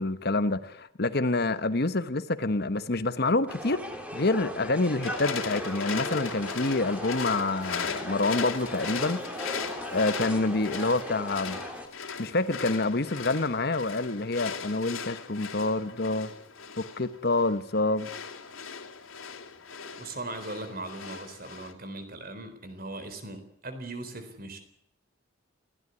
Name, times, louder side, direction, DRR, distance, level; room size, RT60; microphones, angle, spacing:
voice 1, 0.0-11.6 12.2-16.3 16.8-18.1, left 2 dB, 50° left, 1.1 m, -27 dB
sound 1, 3.5-11.9, equal, 5° right, 2.7 m, -38 dB
sound 2, 5.0-21.7, left 6 dB, 85° left, 3.0 m, -38 dB
voice 2, 20.0-24.6, right 2 dB, 45° right, 4.0 m, -39 dB
21.0 x 16.5 x 9.7 m
head